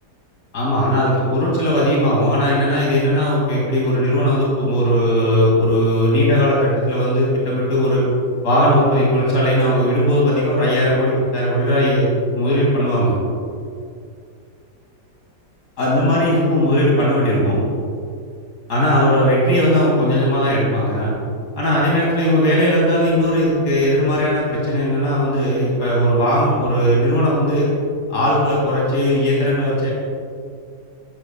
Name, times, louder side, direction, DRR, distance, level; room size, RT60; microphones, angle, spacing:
voice 1, 0.5-8.0 8.4-12.1 12.4-13.2 15.8-17.6 18.7-21.1 21.6-27.7 28.1-29.9, equal, 75° left, -6 dB, 2.8 m, -18 dB
13.0 x 7.9 x 2.2 m, 2.3 s
omnidirectional pair, 1.7 m